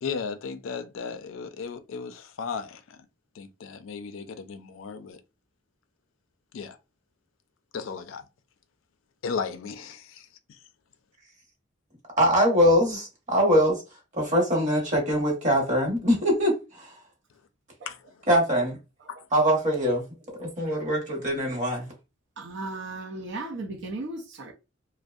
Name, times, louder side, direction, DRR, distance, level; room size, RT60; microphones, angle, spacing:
voice 1, 0.0-3.0 3.4-5.2 6.5-6.8 7.7-8.2 9.2-10.3 17.9-18.0, left 5 dB, 80° left, 0.4 m, -35 dB
voice 2, 12.2-13.8 14.1-16.9 18.3-18.8 19.3-20.0 20.4-21.9, equal, 40° right, 1.0 m, -23 dB
voice 3, 22.4-24.5, right 2 dB, 65° right, 0.5 m, -35 dB
2.6 x 2.0 x 2.3 m
head